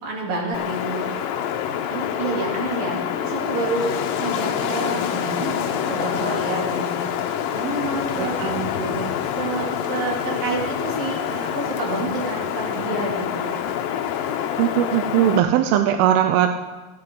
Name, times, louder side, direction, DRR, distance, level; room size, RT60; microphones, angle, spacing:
voice 1, 0.0-1.0 1.9-3.0 3.2-5.5 5.9-7.1 7.5-8.4 9.4-13.6, right 3 dB, 65° right, -3 dB, 4.9 m, -28 dB
Wind, 0.5-15.4, left 9 dB, 75° left, 2.3 m, -26 dB
voice 2, 8.2-9.2 14.6-16.5, right 10 dB, 80° right, 7 dB, 2.5 m, -20 dB
28.0 x 10.5 x 3.9 m, 1.3 s
omnidirectional pair, 4.4 m